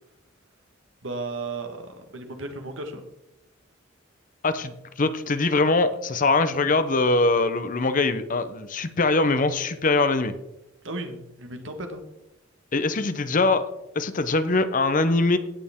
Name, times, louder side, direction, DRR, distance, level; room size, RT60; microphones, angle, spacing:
voice 1, 1.0-3.0 10.8-12.0, right 2 dB, 65° right, 5 dB, 1.6 m, -34 dB
voice 2, 4.4-10.4 12.7-13.7 13.9-15.4, left 3 dB, 40° left, 11 dB, 0.8 m, -22 dB
17.5 x 6.7 x 3.6 m, 0.91 s
head